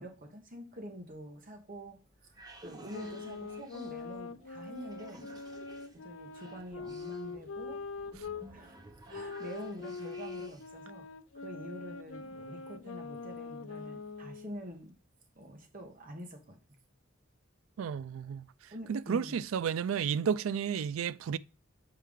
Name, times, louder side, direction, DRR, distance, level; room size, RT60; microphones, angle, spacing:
voice 1, 0.0-2.4 2.6-5.2 6.0-7.8 8.5-8.8 9.1-11.1 11.3-14.9 15.3-16.6 18.7-19.4, equal, 45° right, 1.3 m, -46 dB
sound 1, 2.0-10.8, right 2 dB, 20° right, 0.8 m, -54 dB
sound 2, 2.9-8.5 9.1-14.6, left 4 dB, 85° left, 0.5 m, -43 dB
voice 2, 17.8-18.5 18.9-21.4, right 7 dB, 85° right, 0.4 m, -32 dB
6.9 x 4.6 x 3.6 m
head